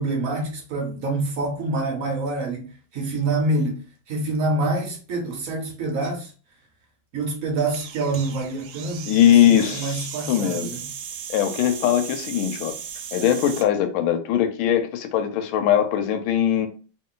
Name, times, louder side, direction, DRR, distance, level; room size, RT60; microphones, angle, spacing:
voice 1, 0.0-6.3 7.1-10.9, right 2 dB, 60° right, 0.9 m, -26 dB
sound 1, 7.6-13.7, right 8 dB, 75° right, 1.3 m, -36 dB
voice 2, 9.1-10.8 11.3-12.8 13.1-16.7, left 10 dB, 80° left, 1.4 m, -21 dB
3.2 x 2.6 x 3.7 m
omnidirectional pair, 2.4 m